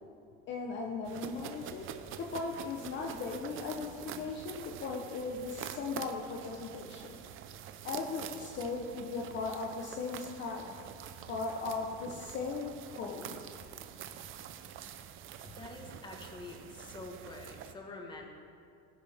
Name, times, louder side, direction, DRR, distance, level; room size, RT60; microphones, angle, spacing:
voice 1, 0.5-7.2 7.8-10.7 11.3-13.3, left 4 dB, 35° left, 1 dB, 1.0 m, -38 dB
sound 1, 1.0-17.7, right 9 dB, 40° right, 0.7 m, -46 dB
voice 2, 15.4-18.3, left 2 dB, 15° left, 1 dB, 1.4 m, -46 dB
17.5 x 10.5 x 3.6 m, 2.3 s
cardioid pair, 145°, 32 cm